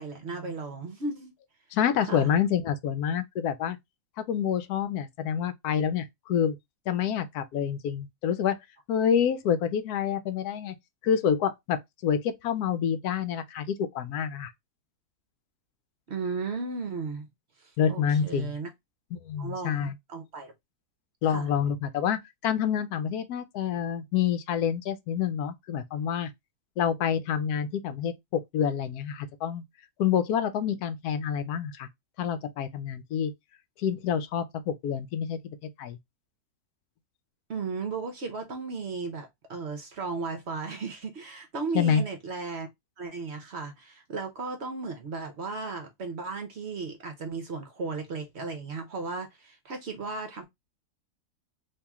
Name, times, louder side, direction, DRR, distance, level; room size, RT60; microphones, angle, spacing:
voice 1, 0.0-1.3 2.1-2.4 16.1-17.3 17.6-18.7 19.4-20.5 21.3-21.5 37.5-42.7 43.0-50.5, right 4 dB, 55° right, 0.8 m, -35 dB
voice 2, 1.7-3.8 4.2-6.6 6.9-8.6 8.9-10.7 11.0-14.5 17.8-18.5 19.1-19.9 21.2-26.3 26.8-29.6 30.0-31.9 32.2-33.3 33.8-35.4 35.8-36.0 41.7-42.0, left 8 dB, 80° left, 1.1 m, -27 dB
3.0 x 2.9 x 3.5 m
omnidirectional pair, 1.7 m